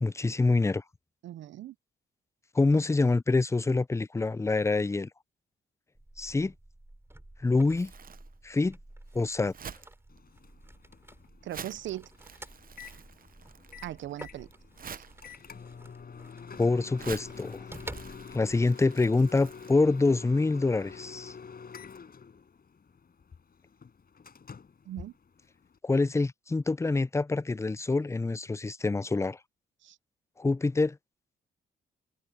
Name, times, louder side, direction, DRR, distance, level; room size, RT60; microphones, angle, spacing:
voice 1, 0.0-0.8 2.5-5.1 6.2-6.5 7.4-7.9 8.4-8.8 9.1-9.5 16.6-17.6 18.3-21.3 25.8-29.4 30.4-31.0, left 3 dB, 15° left, 0.5 m, -26 dB
voice 2, 1.2-1.7 11.4-12.1 13.8-14.5 24.9-25.1 29.8-30.0, right 13 dB, 70° right, 0.5 m, -39 dB
sound 1, 5.9-18.6, right 1 dB, 10° right, 5.4 m, -50 dB
Crumpling crinkling, 7.5-19.7, right 7 dB, 45° right, 0.9 m, -49 dB
Microwave oven, 10.1-25.8, left 6 dB, 50° left, 5.5 m, -47 dB
supercardioid pair, 60°, 20 cm